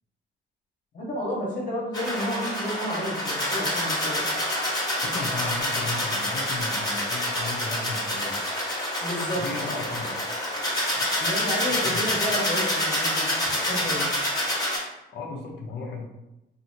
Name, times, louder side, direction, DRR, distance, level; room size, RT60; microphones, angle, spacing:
voice 1, 0.9-4.3 9.0-9.8 11.2-14.1, equal, 45° left, -4 dB, 1.0 m, -31 dB
sound 1, 1.9-14.8, left 1 dB, 20° left, 1.0 m, -27 dB
voice 2, 5.0-8.5 9.3-10.2 11.7-12.1 15.1-16.1, left 3 dB, 60° left, 0 dB, 0.7 m, -35 dB
2.6 x 2.6 x 2.7 m, 0.95 s
cardioid pair, 90°, 20 cm